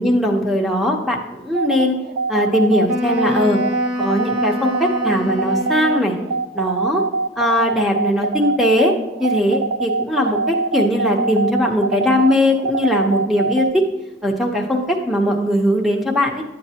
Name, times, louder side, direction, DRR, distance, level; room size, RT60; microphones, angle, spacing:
voice 1, 0.0-2.0 2.3-3.6 4.0-6.2 6.5-7.0 7.4-8.9 9.2-13.8 14.2-16.4, left 1 dB, ahead, 1 dB, 0.9 m, -19 dB
sound 1, 1.5-13.7, right 3 dB, 75° right, 0.3 m, -22 dB
Wind instrument woodwind instrument, 2.9-6.4, left 1 dB, 45° right, 2.4 m, -26 dB
11.0 x 7.9 x 2.9 m, 1.1 s
head